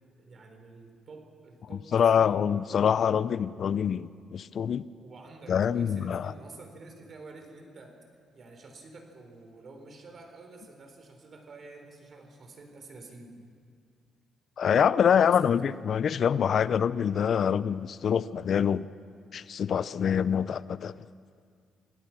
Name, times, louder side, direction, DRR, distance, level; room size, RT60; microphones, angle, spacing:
voice 1, 0.2-2.4 5.0-8.0 8.3-13.4 15.1-15.5, right 3 dB, 50° right, 5 dB, 4.3 m, -49 dB
voice 2, 1.9-4.8 5.5-6.3 14.6-18.9 19.3-20.9, left 8 dB, 55° left, 17 dB, 0.5 m, -25 dB
28.0 x 18.0 x 6.0 m, 2.2 s
cardioid pair, 90°, 0 cm